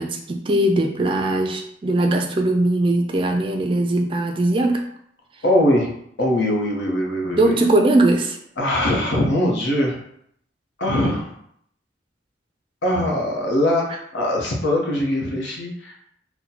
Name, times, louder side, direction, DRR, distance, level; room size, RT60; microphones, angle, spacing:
voice 1, 0.0-4.8 7.2-8.4, right 1 dB, 30° right, 3 dB, 0.3 m, -20 dB
voice 2, 5.4-5.9 6.2-7.5 8.6-10.0 10.8-11.3 12.8-15.9, left 1 dB, 80° left, -1 dB, 0.8 m, -21 dB
4.1 x 2.1 x 2.8 m, 0.69 s
head